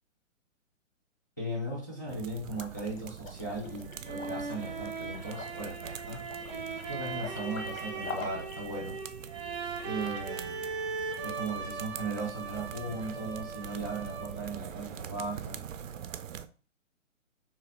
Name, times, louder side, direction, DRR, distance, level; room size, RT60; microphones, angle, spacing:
voice 1, 1.4-6.3 6.9-9.0 9.8-10.6 11.2-15.7, right 2 dB, 15° left, 0.3 m, -37 dB
sound 1, 2.1-16.5, right 8 dB, 75° right, 0.5 m, -44 dB
Liquid, 2.5-8.6, left 4 dB, 80° left, 1.0 m, -45 dB
sound 2, 3.7-14.5, right 4 dB, 25° right, 0.7 m, -39 dB
3.6 x 2.9 x 2.9 m
hypercardioid pair, 140°, 39 cm